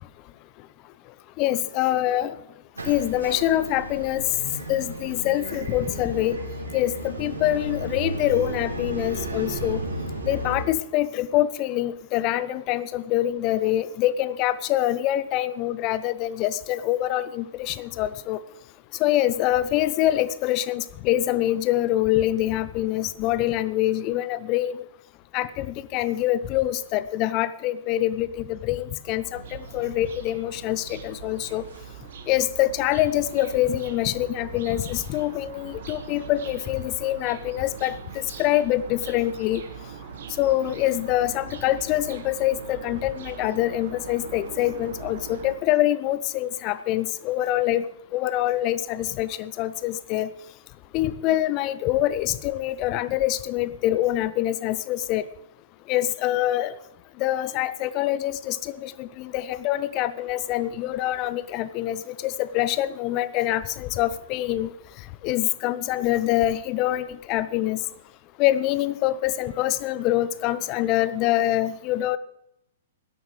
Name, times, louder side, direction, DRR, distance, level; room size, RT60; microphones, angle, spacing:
voice 1, 1.4-2.4 2.9-4.3 4.7-6.4 6.7-9.8 10.2-18.4 19.0-24.8 25.3-31.6 32.3-39.6 40.4-47.8 48.1-50.3 50.9-55.2 55.9-56.7 57.2-64.7 65.2-67.8 68.4-72.2, left 14 dB, 35° left, 16 dB, 0.7 m, -25 dB
sound 1, 2.7-10.6, right 2 dB, 80° right, 3.9 m, -33 dB
sound 2, 29.2-45.6, right 6 dB, 55° right, 1.6 m, -41 dB
17.0 x 12.5 x 3.2 m, 0.80 s
figure-of-eight pair, 110°, 0 cm